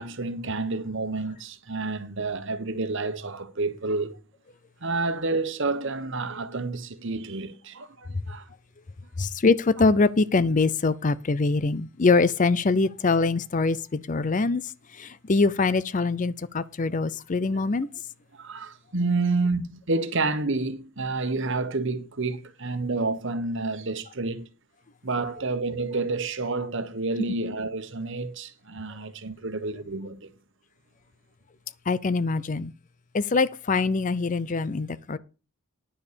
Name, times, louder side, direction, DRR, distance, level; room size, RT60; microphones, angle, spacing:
voice 1, 0.0-4.2 4.8-8.4 17.5-17.6 18.3-24.5 25.0-30.3, right 3 dB, 60° right, 1.3 m, -29 dB
voice 2, 9.2-14.6 14.9-17.9 31.9-32.7 33.1-35.2, left 3 dB, 35° left, 0.5 m, -23 dB
10.0 x 6.8 x 6.9 m
head